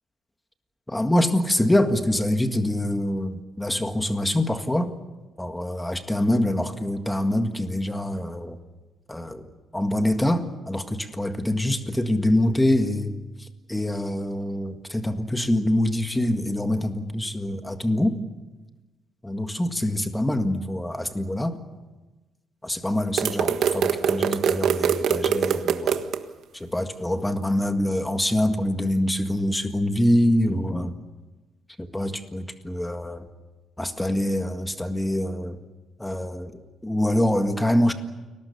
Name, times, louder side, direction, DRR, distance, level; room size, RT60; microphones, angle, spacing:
voice 1, 0.9-4.9 5.4-8.6 9.1-9.5 9.7-13.1 13.7-18.2 19.2-21.6 22.6-26.0 26.6-30.9 31.8-33.3 33.8-35.6 36.0-36.5 36.8-37.9, left 1 dB, 5° left, 7 dB, 1.8 m, -25 dB
sound 1, 23.2-26.2, right 8 dB, 70° right, 1.5 m, -23 dB
29.5 x 21.0 x 7.0 m, 1.2 s
cardioid pair, 145°, 0 cm